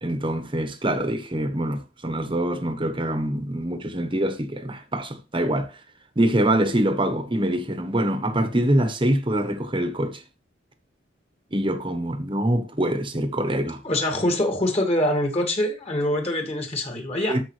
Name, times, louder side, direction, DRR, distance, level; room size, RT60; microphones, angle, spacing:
voice 1, 0.0-5.7 6.2-10.2 11.5-13.8 17.3-17.4, right 1 dB, 25° right, 1.1 m, -24 dB
voice 2, 13.8-17.4, left 1 dB, 30° left, 2.1 m, -24 dB
13.0 x 5.1 x 3.3 m
head